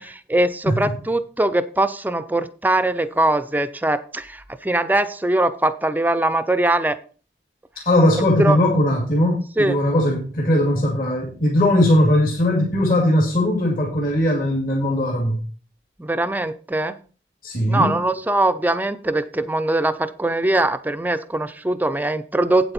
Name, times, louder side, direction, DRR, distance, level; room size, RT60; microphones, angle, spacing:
voice 1, 0.0-7.0 8.4-8.6 9.6-9.8 16.0-17.0 17.7-22.7, right 2 dB, 10° right, 11 dB, 0.5 m, -21 dB
voice 2, 7.8-15.4 17.4-17.9, left 1 dB, 50° left, -1 dB, 2.4 m, -19 dB
8.6 x 8.0 x 4.3 m, 0.38 s
head